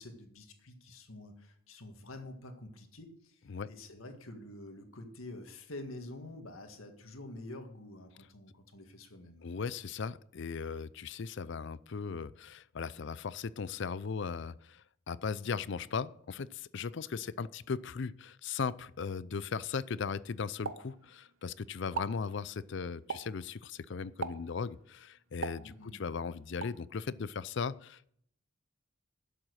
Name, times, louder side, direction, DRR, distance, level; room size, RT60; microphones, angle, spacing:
voice 1, 0.0-9.7 25.6-26.0, left 1 dB, 75° left, 6 dB, 1.9 m, -48 dB
voice 2, 9.4-28.1, left 5 dB, 55° left, 19 dB, 0.4 m, -38 dB
Explosion, 20.7-21.5 21.8-22.3 23.1-23.5 24.2-24.6 25.4-26.1 26.6-26.9, right 5 dB, 65° right, 0.7 m, -40 dB
11.5 x 7.6 x 6.3 m, 0.66 s
head